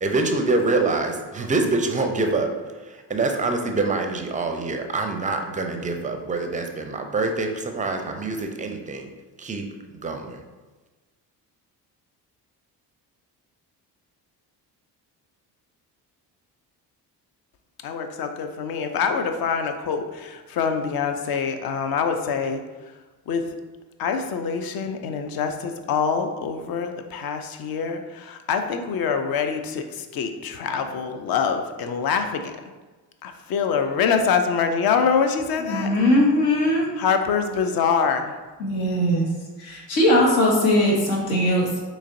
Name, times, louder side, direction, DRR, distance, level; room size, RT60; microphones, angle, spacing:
voice 1, 0.0-2.5 2.8-9.1 9.4-9.7 9.9-10.4, right 3 dB, 15° right, 4 dB, 0.4 m, -25 dB
voice 2, 17.8-22.6 23.3-23.4 24.0-32.5 33.2-35.9 37.0-38.3, left 6 dB, 50° left, 6 dB, 0.5 m, -25 dB
voice 3, 35.6-36.9 38.6-39.3 39.6-41.8, left 1 dB, 70° left, -2 dB, 1.1 m, -20 dB
3.9 x 3.0 x 2.6 m, 1.2 s
hypercardioid pair, 50°, 50 cm